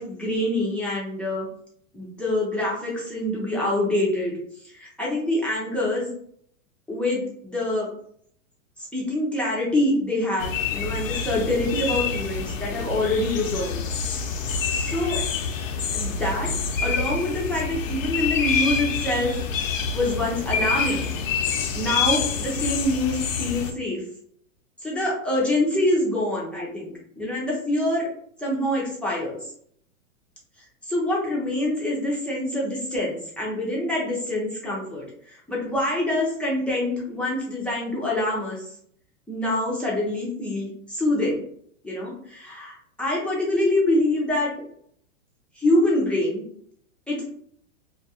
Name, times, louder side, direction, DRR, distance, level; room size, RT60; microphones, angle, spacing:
voice 1, 0.0-1.5 1.9-4.4 4.6-6.1 6.9-7.9 8.9-13.7 14.7-15.2 15.9-16.5 16.8-19.4 19.9-21.1 21.7-24.0 24.8-28.1 28.4-29.4 30.9-38.6 39.3-41.4 41.8-44.5 45.6-46.4 47.1-47.2, left 1 dB, 5° left, -5 dB, 0.3 m, -25 dB
sound 1, 10.4-23.7, left 5 dB, 85° left, 0.6 m, -27 dB
2.3 x 2.3 x 2.7 m, 0.64 s
hypercardioid pair, 120°, 38 cm